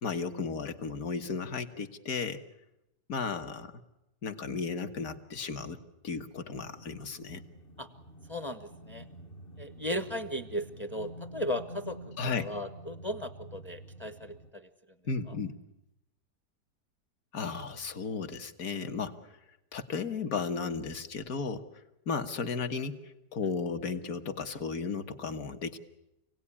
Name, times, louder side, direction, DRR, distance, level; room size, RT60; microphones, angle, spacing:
voice 1, 0.0-2.4 3.1-3.7 4.2-5.8 6.0-7.4 12.2-12.5 15.1-15.6 17.3-19.2 19.7-21.7 22.1-25.8, left 5 dB, 55° left, 7 dB, 1.8 m, -34 dB
sound 1, 6.5-14.5, right 1 dB, 35° left, 1.2 m, -48 dB
voice 2, 8.3-9.1 9.6-14.7 15.3-15.4, left 1 dB, 20° left, 8 dB, 1.0 m, -36 dB
27.0 x 18.0 x 9.9 m, 0.91 s
omnidirectional pair, 1.9 m